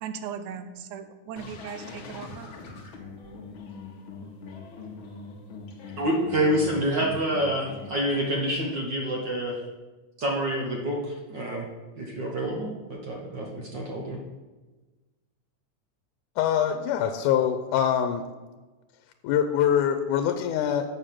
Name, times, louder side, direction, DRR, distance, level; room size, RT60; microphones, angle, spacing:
voice 1, 0.0-2.5, right 7 dB, 80° right, 10 dB, 2.2 m, -38 dB
sound 1, 1.4-7.9, left 4 dB, 55° left, 1.5 m, -42 dB
voice 2, 6.0-9.6 10.2-11.7 12.0-14.2, right 1 dB, 55° right, -1 dB, 1.2 m, -27 dB
voice 3, 16.4-18.3 19.2-20.9, left 9 dB, 90° left, 8 dB, 2.1 m, -24 dB
6.9 x 6.5 x 7.5 m, 1.2 s
omnidirectional pair, 3.6 m